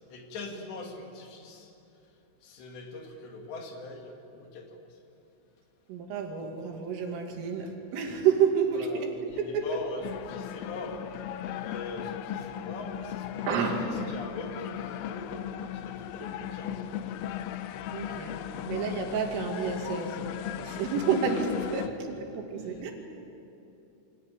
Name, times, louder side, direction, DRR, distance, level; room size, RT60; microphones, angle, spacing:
voice 1, 0.1-1.7 2.4-4.7 8.8-11.0 11.6-13.6 13.8-15.3 15.8-16.9 18.4-18.6 21.8-21.9 22.7-22.8, left 3 dB, 65° left, 2 dB, 4.1 m, -42 dB
voice 2, 5.9-9.1 9.4-9.7 13.5-13.8 17.9-18.3 18.6-20.2 20.6-22.9, right 7 dB, 80° right, 2 dB, 5.0 m, -29 dB
sound 1, 10.0-21.9, left 10 dB, 80° left, 3.3 m, -37 dB
25.0 x 17.5 x 9.8 m, 2.9 s
omnidirectional pair, 5.8 m